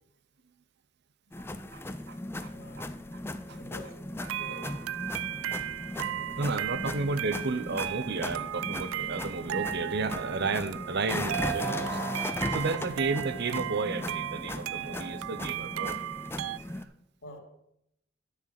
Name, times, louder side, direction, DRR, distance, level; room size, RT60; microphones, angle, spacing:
sound 1, 1.3-16.8, left 1 dB, 10° left, 0.5 m, -37 dB
voice 1, 1.7-2.9 3.5-3.6 6.4-12.0 12.5-16.0 16.6-16.9, right 3 dB, 55° right, 13 dB, 0.7 m, -33 dB
voice 2, 2.5-2.9 3.6-3.9 4.3-4.7 6.0-6.5 17.2-17.4, left 1 dB, 65° left, 1 dB, 2.7 m, -47 dB
sound 2, 4.2-16.6, right 13 dB, 75° right, 0.3 m, -36 dB
10.5 x 6.7 x 6.5 m, 0.78 s
head